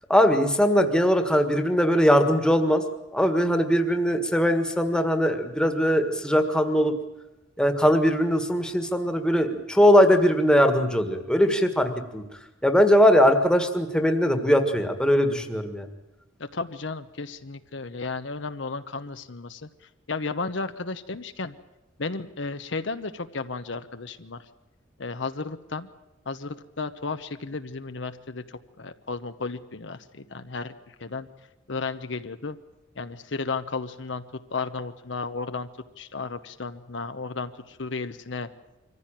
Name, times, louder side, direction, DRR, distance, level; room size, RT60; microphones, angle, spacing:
voice 1, 0.1-2.8 3.1-6.9 7.6-12.2 12.6-15.9, equal, 5° left, 6 dB, 1.7 m, -20 dB
voice 2, 16.5-19.7 20.1-21.5 22.0-24.5 25.0-25.9 26.3-31.3 31.7-32.6 33.0-34.2 34.5-35.7 36.0-38.5, left 4 dB, 65° left, 10 dB, 0.9 m, -33 dB
24.5 x 15.0 x 9.0 m, 1.0 s
head